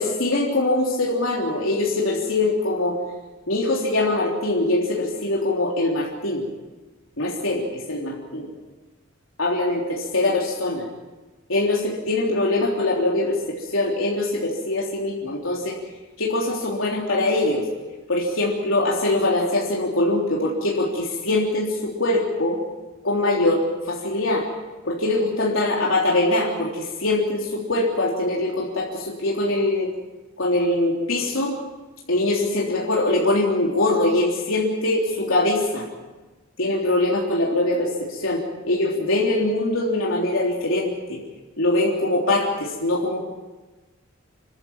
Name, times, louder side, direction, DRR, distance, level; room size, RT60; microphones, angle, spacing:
voice 1, 0.0-3.0 3.5-6.4 7.2-8.5 9.4-10.9 11.5-15.8 16.2-17.6 18.1-22.6 23.0-24.4 24.8-29.9 30.4-31.6 32.1-35.8 36.6-41.2 41.6-43.2, left 2 dB, 85° left, -3 dB, 3.6 m, -23 dB
27.0 x 14.0 x 8.9 m, 1.2 s
head